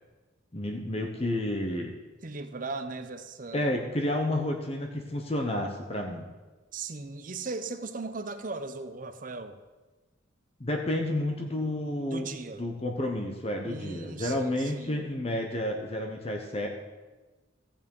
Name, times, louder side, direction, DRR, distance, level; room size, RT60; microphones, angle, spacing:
voice 1, 0.5-1.9 3.5-6.3 10.6-12.3 12.6-16.7, left 1 dB, 30° left, 3 dB, 0.9 m, -30 dB
voice 2, 2.2-3.8 6.7-9.6 12.0-12.6 13.7-15.0, right 3 dB, 40° right, 9 dB, 0.7 m, -38 dB
15.0 x 7.2 x 5.4 m, 1.2 s
head